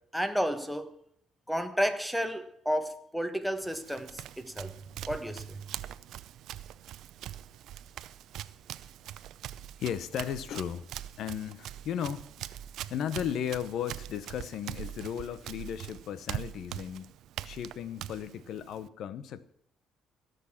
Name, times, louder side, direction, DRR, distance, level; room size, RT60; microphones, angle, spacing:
voice 1, 0.1-0.9 1.5-4.8 5.1-5.7, equal, ahead, 1.3 m, -32 dB
Run, 3.6-18.9, right 12 dB, 70° right, 0.5 m, -43 dB
voice 2, 9.8-10.9 11.2-12.5 12.9-17.1 17.4-19.4, left 9 dB, 65° left, 0.9 m, -35 dB
16.5 x 6.8 x 7.3 m
cardioid pair, 95°, 0 cm